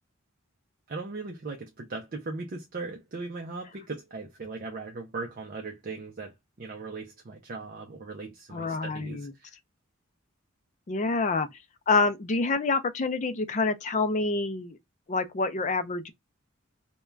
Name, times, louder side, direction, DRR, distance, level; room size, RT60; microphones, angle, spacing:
voice 1, 0.9-9.5, right 3 dB, 45° right, 0.5 m, -38 dB
voice 2, 8.5-9.3 10.9-11.5 11.9-14.8 15.1-16.1, left 3 dB, 35° left, 0.4 m, -27 dB
2.4 x 2.2 x 3.1 m
head